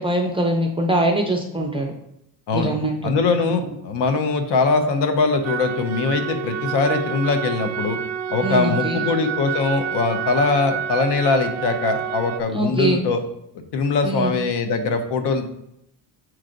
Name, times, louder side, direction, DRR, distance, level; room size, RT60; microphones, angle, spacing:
voice 1, 0.0-1.9 2.5-3.5 8.4-9.0 12.5-13.0 14.0-14.3, right 1 dB, 15° right, 2 dB, 0.4 m, -23 dB
voice 2, 3.0-8.0 8.3-13.2 13.5-15.5, left 4 dB, 75° left, 6 dB, 0.9 m, -21 dB
sound 1, 5.4-12.4, right 9 dB, 75° right, 0.5 m, -29 dB
7.7 x 3.2 x 3.8 m, 0.80 s
cardioid pair, 165°, 42 cm